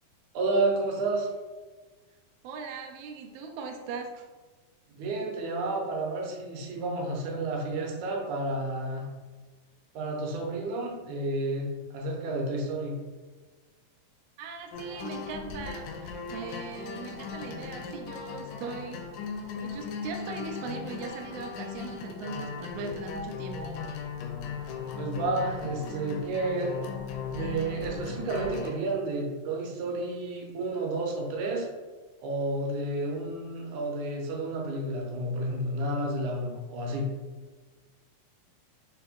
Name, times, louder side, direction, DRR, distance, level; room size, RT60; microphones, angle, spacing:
voice 1, 0.3-1.3 5.0-9.1 9.9-13.0 25.0-26.8 27.3-31.7 32.2-37.1, right 2 dB, 75° right, -1 dB, 2.0 m, -31 dB
voice 2, 2.4-4.2 14.4-19.0 19.6-23.8, right 4 dB, 90° right, 2 dB, 1.7 m, -39 dB
sound 1, 14.7-28.7, left 5 dB, 80° left, 2.0 m, -38 dB
5.7 x 2.1 x 3.5 m, 1.3 s
omnidirectional pair, 3.9 m